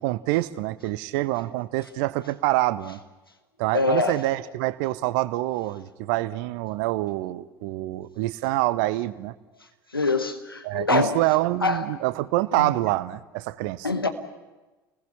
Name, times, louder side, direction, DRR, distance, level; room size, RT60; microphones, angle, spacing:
voice 1, 0.0-3.0 3.6-9.3 10.6-13.9, right 17 dB, 55° right, 17 dB, 0.9 m, -26 dB
voice 2, 3.7-4.2 9.9-11.2 11.6-11.8 12.5-12.7 13.8-14.1, left 3 dB, 85° left, 8 dB, 1.3 m, -24 dB
29.5 x 20.5 x 5.7 m, 1.2 s
figure-of-eight pair, 70°, 12 cm